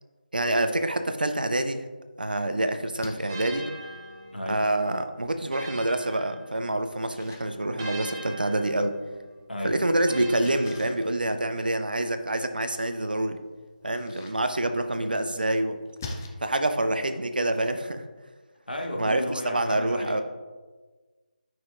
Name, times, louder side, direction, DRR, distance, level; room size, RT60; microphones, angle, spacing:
voice 1, 0.3-1.8 2.2-3.7 4.5-9.0 9.6-13.4 13.8-15.8 16.4-18.0 19.0-20.2, right 1 dB, 70° right, 8 dB, 0.6 m, -26 dB
Splash splatter, 2.7-16.3, left 3 dB, 20° left, 0.5 m, -48 dB
sound 1, 3.3-7.0 7.8-11.5, right 2 dB, 30° right, 1.5 m, -43 dB
voice 2, 4.3-4.7 9.5-9.8 18.7-20.2, left 1 dB, 85° left, 0 dB, 1.3 m, -33 dB
9.2 x 5.9 x 2.4 m, 1.3 s
figure-of-eight pair, 155°, 5 cm